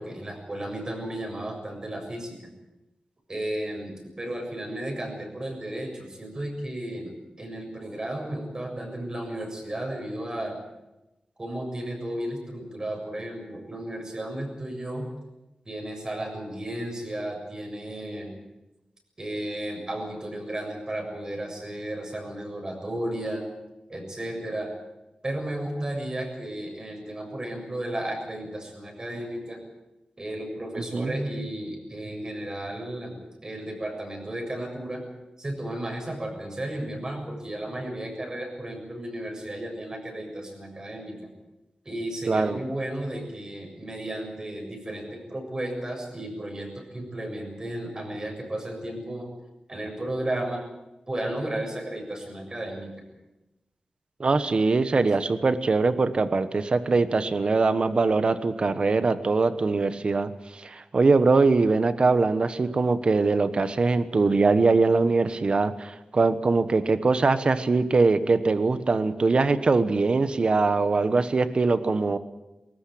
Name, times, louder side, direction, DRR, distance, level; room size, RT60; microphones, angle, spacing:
voice 1, 0.0-2.4 3.3-10.6 11.4-15.1 15.7-18.3 19.2-23.5 23.9-24.7 25.2-29.6 30.2-35.0 35.4-41.3 41.9-49.3 49.7-50.6 51.1-52.9, right 1 dB, 30° right, 2 dB, 7.2 m, -34 dB
voice 2, 42.3-42.6 54.2-72.2, right 3 dB, 50° right, 12 dB, 1.3 m, -22 dB
20.5 x 18.0 x 8.6 m, 0.99 s
wide cardioid pair, 115°, 2 cm